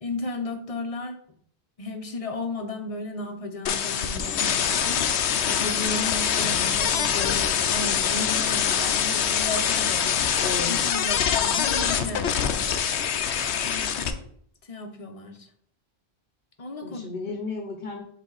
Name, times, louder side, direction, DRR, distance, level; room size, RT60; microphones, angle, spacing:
voice 1, 0.0-1.2 1.8-10.2 10.7-12.8 13.6-14.3 14.7-15.5 16.6-17.1, left 3 dB, 35° left, 4 dB, 0.9 m, -34 dB
sound 1, 3.7-14.1, left 8 dB, 90° left, 0.9 m, -24 dB
voice 2, 6.3-6.9 10.4-10.8 11.3-11.7 16.8-18.0, left 4 dB, 65° left, 3 dB, 1.0 m, -34 dB
7.7 x 3.3 x 4.0 m, 0.63 s
omnidirectional pair, 1.1 m